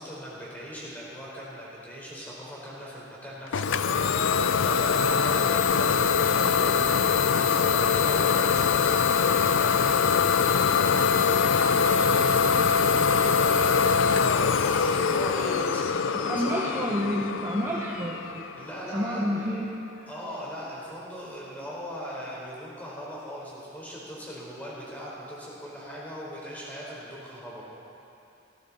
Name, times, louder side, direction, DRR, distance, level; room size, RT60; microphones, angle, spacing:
voice 1, 0.0-7.1 7.4-16.9 18.6-19.3 20.1-27.7, equal, 10° left, -7 dB, 4.3 m, -39 dB
Idling / Domestic sounds home sounds, 3.5-19.1, left 6 dB, 65° left, 0.5 m, -23 dB
voice 2, 16.2-18.5 18.9-19.7, equal, 15° right, -5 dB, 1.1 m, -29 dB
17.0 x 15.5 x 4.3 m, 2.7 s
head